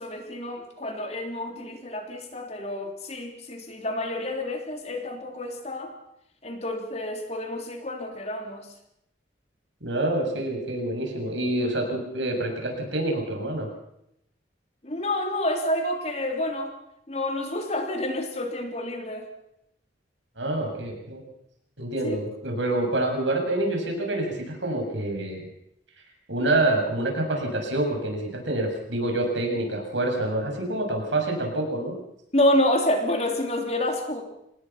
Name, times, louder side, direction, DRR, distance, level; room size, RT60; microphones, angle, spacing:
voice 1, 0.0-5.9 6.4-8.7 14.8-16.7 17.1-19.3 22.0-22.2 32.3-34.2, left 1 dB, 35° left, 4 dB, 3.3 m, -28 dB
voice 2, 9.8-13.7 20.4-21.2 21.8-25.4 26.3-31.9, right 2 dB, 90° right, 2 dB, 7.2 m, -27 dB
26.5 x 19.0 x 5.8 m, 0.79 s
head